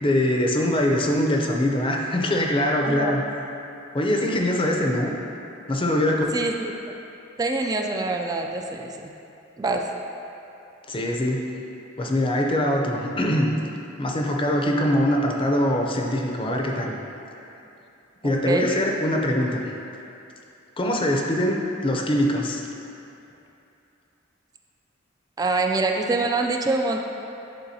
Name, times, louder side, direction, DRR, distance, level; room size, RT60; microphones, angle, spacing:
voice 1, 0.0-3.2 3.9-5.1 5.7-6.2 10.9-11.6 12.0-13.5 14.0-17.0 18.2-19.7 20.8-22.6, left 1 dB, 25° left, 1 dB, 0.6 m, -23 dB
voice 2, 6.3-6.7 7.4-9.1 9.6-9.9 18.2-18.7 25.4-27.0, right 3 dB, 20° right, 3 dB, 0.3 m, -25 dB
11.0 x 3.8 x 2.8 m, 2.8 s
head